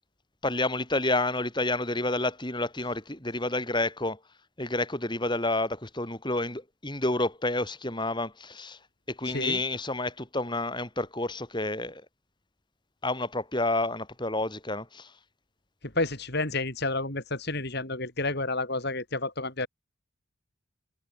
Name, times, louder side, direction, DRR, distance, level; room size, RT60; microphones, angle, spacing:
voice 1, 0.4-4.2 4.6-8.8 9.1-12.0 13.0-15.1, left 2 dB, 20° left, 5.9 m, -29 dB
voice 2, 15.9-19.7, left 2 dB, 50° left, 4.8 m, -30 dB
head